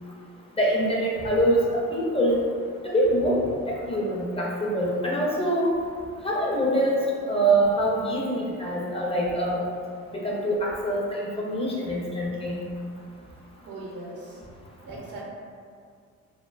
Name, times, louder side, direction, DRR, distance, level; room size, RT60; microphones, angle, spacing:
voice 1, 0.6-2.4 2.8-3.4 3.7-5.7 6.2-7.0 7.3-9.7 10.1-12.6, right 1 dB, 20° left, -4 dB, 0.4 m, -24 dB
voice 2, 13.6-14.4 14.8-15.2, right 2 dB, 80° right, -3 dB, 0.7 m, -39 dB
2.6 x 2.1 x 2.3 m, 2.2 s
cardioid pair, 90°, 30 cm